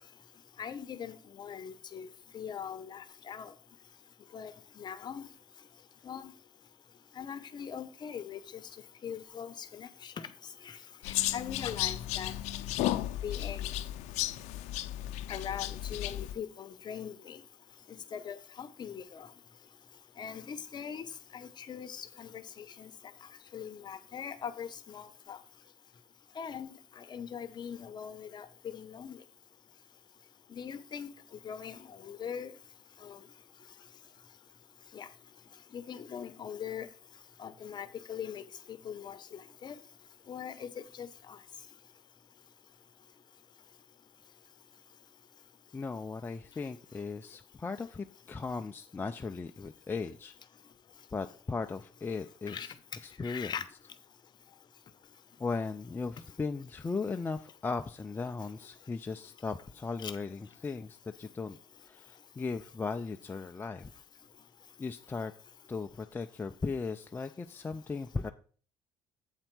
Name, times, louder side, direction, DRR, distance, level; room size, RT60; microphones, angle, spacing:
voice 1, 0.6-2.1 2.3-3.5 4.3-4.5 4.8-5.3 6.0-6.3 7.2-8.6 9.0-10.3 10.6-10.8 11.1-12.3 13.2-13.8 15.3-17.4 17.9-19.3 20.2-21.0 21.3-22.9 23.5-25.4 26.4-29.2 30.5-31.1 31.4-32.5 33.0-33.2 34.9-35.1 35.7-36.9 37.4-38.4 38.7-39.8 40.3-41.1 52.5-52.7 53.2-53.6 60.0-60.1, left 8 dB, 40° left, 0.9 m, -41 dB
sound 1, 11.0-16.3, left 14 dB, 75° left, 0.5 m, -34 dB
voice 2, 45.7-50.3 51.1-52.7 53.0-53.5 55.4-61.6 61.8-63.9 64.8-65.3 65.7-68.3, left 4 dB, 15° left, 0.4 m, -37 dB
8.1 x 4.4 x 5.9 m
cardioid pair, 105°, 12 cm